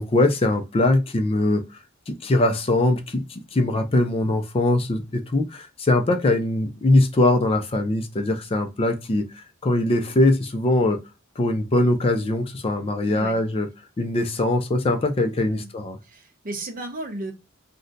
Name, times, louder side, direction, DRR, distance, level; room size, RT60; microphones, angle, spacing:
voice 1, 0.0-1.6 2.1-11.0 11.4-13.7 14.0-16.0, left 2 dB, 30° left, 0.4 m, -22 dB
voice 2, 13.1-13.4 15.5-15.7 16.0-17.3, right 2 dB, 45° right, 0.7 m, -34 dB
2.6 x 2.1 x 3.7 m
head